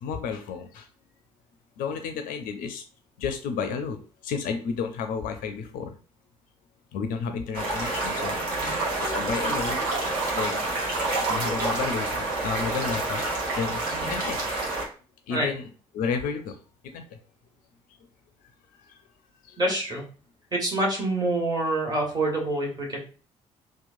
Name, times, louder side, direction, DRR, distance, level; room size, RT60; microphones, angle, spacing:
voice 1, 0.0-0.9 1.8-2.8 3.2-5.9 6.9-8.4 9.0-9.8 10.3-10.7 11.3-14.4 15.3-15.6 15.9-16.6 16.9-17.2 18.9-19.0 19.4-19.6, left 6 dB, 55° left, 7 dB, 0.4 m, -32 dB
sound 1, 7.5-14.8, right 2 dB, 60° right, 0.9 m, -28 dB
voice 2, 8.5-8.8 13.9-14.2 15.3-15.5 19.6-20.0 20.5-23.0, right 1 dB, 25° right, -2 dB, 1.3 m, -27 dB
2.9 x 2.1 x 2.5 m, 0.38 s
figure-of-eight pair, 40°, 17 cm